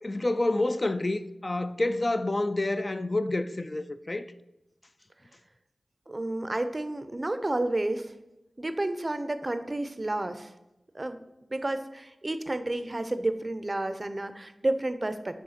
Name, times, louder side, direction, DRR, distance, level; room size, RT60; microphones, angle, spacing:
voice 1, 0.0-4.3, left 2 dB, 40° left, 0.3 m, -28 dB
voice 2, 6.1-8.1 8.6-10.5 10.9-11.2 11.5-15.4, right 1 dB, 35° right, 0.5 m, -31 dB
6.4 x 3.5 x 5.7 m
cardioid pair, 55°, 0 cm